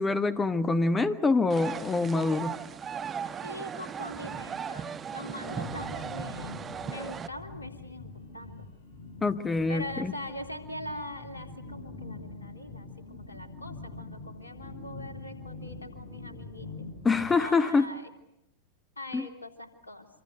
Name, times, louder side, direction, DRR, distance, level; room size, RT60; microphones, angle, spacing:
voice 1, 0.0-2.6 9.2-10.1 17.0-17.9 19.1-19.2, left 3 dB, 15° left, 12 dB, 1.3 m, -25 dB
sound 1, 1.5-7.3, right 7 dB, 20° right, 1.3 m, -37 dB
voice 2, 3.4-6.6 6.9-8.6 9.7-18.1 19.0-20.1, left 1 dB, 80° left, 6 dB, 3.2 m, -42 dB
sound 2, 5.5-17.3, left 3 dB, 55° left, 5.4 m, -44 dB
27.5 x 26.0 x 7.9 m, 0.78 s
figure-of-eight pair, 90°, 0 cm